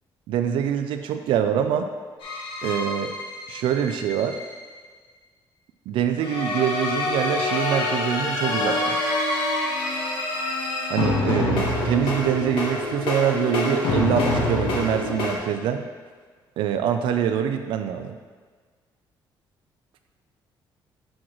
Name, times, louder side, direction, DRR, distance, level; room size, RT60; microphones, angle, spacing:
voice 1, 0.3-1.9 2.6-3.1 3.5-4.4 5.9-9.0 10.9-15.8 16.6-18.2, right 9 dB, 75° right, 7 dB, 0.4 m, -24 dB
sound 1, 2.2-4.5 6.2-15.4, left 2 dB, 80° left, 1.2 m, -26 dB
6.3 x 6.0 x 3.0 m, 1.5 s
cardioid pair, 165°, 9 cm